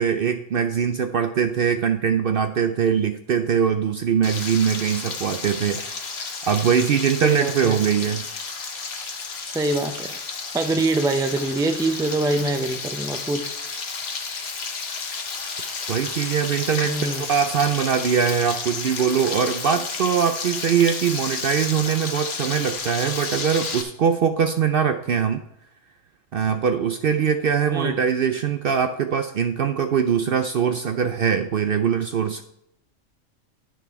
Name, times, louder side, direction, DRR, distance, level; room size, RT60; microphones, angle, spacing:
voice 1, 0.0-5.9 6.5-8.3 15.9-17.0 17.3-25.4 26.3-32.4, right 7 dB, 60° right, 8 dB, 0.6 m, -22 dB
Frying (food), 4.2-23.8, left 4 dB, 55° left, 1.3 m, -32 dB
voice 2, 7.2-7.8 9.5-10.2 10.5-13.5 16.8-17.3 27.7-28.0, right 2 dB, 5° right, 7 dB, 0.4 m, -24 dB
10.5 x 6.2 x 4.7 m, 0.76 s
omnidirectional pair, 1.3 m